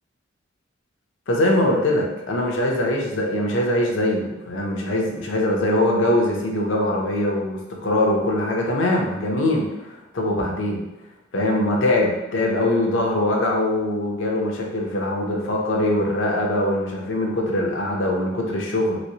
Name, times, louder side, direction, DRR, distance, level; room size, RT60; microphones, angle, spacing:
voice 1, 1.3-10.8 11.3-19.0, left 1 dB, 70° left, -1 dB, 0.6 m, -22 dB
3.1 x 3.0 x 2.7 m, 1.0 s
head